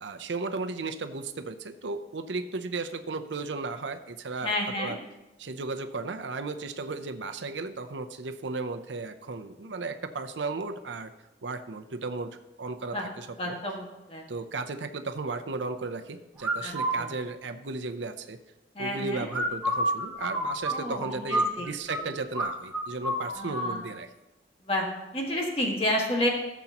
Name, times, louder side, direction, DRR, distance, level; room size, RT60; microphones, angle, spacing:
voice 1, 0.0-5.0 5.4-11.1 11.4-13.6 14.3-18.4 18.8-24.1, right 3 dB, 85° right, 8 dB, 0.7 m, -35 dB
voice 2, 4.4-4.9 12.9-13.1 13.4-14.2 16.6-16.7 17.0-17.1 18.8-19.3 20.7-21.7 22.0-22.1 23.4-23.8 24.6-24.9 25.1-26.3, left 1 dB, 30° left, 0 dB, 1.7 m, -30 dB
sound 1, 16.4-17.0 19.3-22.0 22.3-22.5 22.7-23.7, right 1 dB, 5° right, 1.7 m, -28 dB
15.5 x 7.1 x 3.0 m, 1.0 s
head